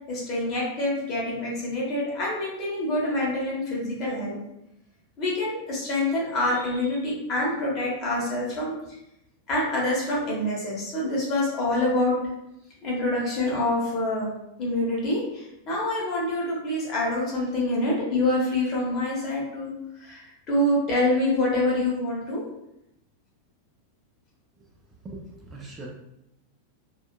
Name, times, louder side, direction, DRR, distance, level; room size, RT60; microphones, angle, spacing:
voice 1, 0.1-4.4 5.2-8.7 9.5-12.2 12.8-14.3 14.6-19.7 20.0-22.4, left 1 dB, 35° left, -4 dB, 1.0 m, -26 dB
voice 2, 25.0-25.9, right 2 dB, 20° right, -2 dB, 0.4 m, -40 dB
2.6 x 2.3 x 2.2 m, 0.83 s
figure-of-eight pair, 90°, 0 cm